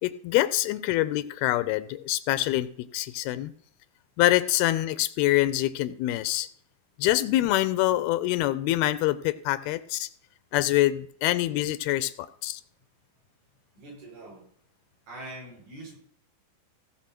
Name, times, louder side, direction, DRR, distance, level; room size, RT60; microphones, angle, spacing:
voice 1, 0.0-3.5 4.2-6.5 7.0-10.1 10.5-12.6, left 15 dB, 80° left, 15 dB, 2.4 m, -25 dB
voice 2, 13.7-14.5 15.1-16.0, right 2 dB, 70° right, -3 dB, 7.0 m, -43 dB
16.0 x 6.2 x 5.8 m, 0.62 s
omnidirectional pair, 4.6 m